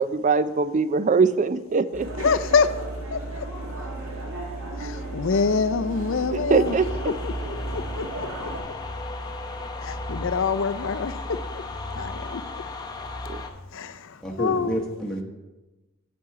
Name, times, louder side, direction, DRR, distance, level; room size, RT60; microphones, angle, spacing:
voice 1, 0.0-2.1 6.3-6.9 13.3-13.4, right 4 dB, 35° right, 15 dB, 0.4 m, -22 dB
sound 1, 1.9-8.6, right 2 dB, 75° right, 2.2 m, -34 dB
voice 2, 2.2-2.7 3.1-3.5 4.8-6.8 7.2-8.5 9.8-11.7 11.9-12.4 13.7-14.8, left 5 dB, 60° left, 12 dB, 0.5 m, -26 dB
sound 2, 6.6-13.5, left 2 dB, 20° left, 0.8 m, -35 dB
voice 3, 14.2-15.2, equal, 5° left, -2 dB, 1.1 m, -29 dB
8.9 x 7.9 x 4.7 m, 1.1 s
head